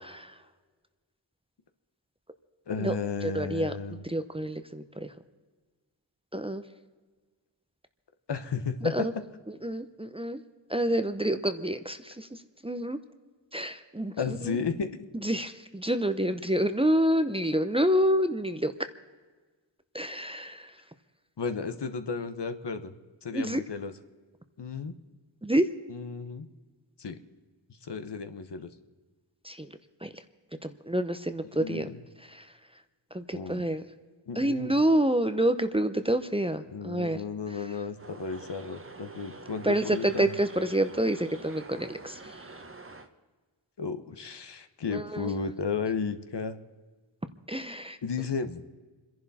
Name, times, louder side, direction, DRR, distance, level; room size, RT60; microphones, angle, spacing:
voice 1, 2.7-4.0 8.3-9.1 14.2-15.1 21.4-22.9 23.2-23.9 24.6-24.9 25.9-26.5 27.0-27.1 27.8-28.7 31.6-32.0 33.3-33.7 34.3-34.7 36.7-40.4 43.8-46.6 48.0-48.6, left 5 dB, 60° left, 8 dB, 1.2 m, -33 dB
voice 2, 3.3-3.7 4.1-5.1 6.3-6.6 8.8-9.1 9.6-10.4 10.7-12.4 12.6-13.0 13.5-14.1 14.5-14.6 15.2-18.7 19.9-20.7 23.3-23.6 25.4-25.7 29.4-29.7 30.0-30.1 30.6-31.9 32.3-32.4 33.1-33.8 34.4-37.2 39.6-42.2 44.9-45.3 47.5-48.0, right 1 dB, 10° right, 9 dB, 0.8 m, -28 dB
sound 1, 38.0-43.1, right 3 dB, 30° right, 1.2 m, -46 dB
27.0 x 11.0 x 4.2 m, 1.4 s
wide cardioid pair, 75°, 46 cm